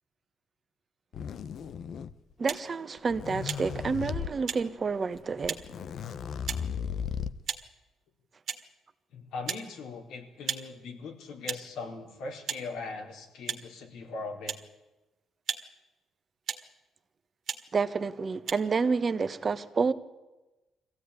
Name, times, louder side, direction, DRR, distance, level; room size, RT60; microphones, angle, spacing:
sound 1, 1.1-2.3 3.0-4.3 5.2-5.3 5.4-7.5, left 7 dB, 65° left, 0.9 m, -36 dB
voice 1, 2.4-5.6 17.7-19.9, right 5 dB, 40° right, 1.3 m, -29 dB
sound 2, 2.4-2.6 3.4-3.6 4.5-4.6 5.5-5.6 6.5-6.6 7.4-7.6 8.4-8.6 9.4-9.7 10.4-10.6 11.4-11.6 12.5-12.6 13.4-13.6 14.5-14.6 15.4-15.6 16.4-16.7 17.4-17.6 18.4-18.5, right 8 dB, 60° right, 1.9 m, -34 dB
voice 2, 9.1-14.6, left 3 dB, 80° left, 4.1 m, -40 dB
22.0 x 15.5 x 9.9 m
cardioid pair, 90°, 0 cm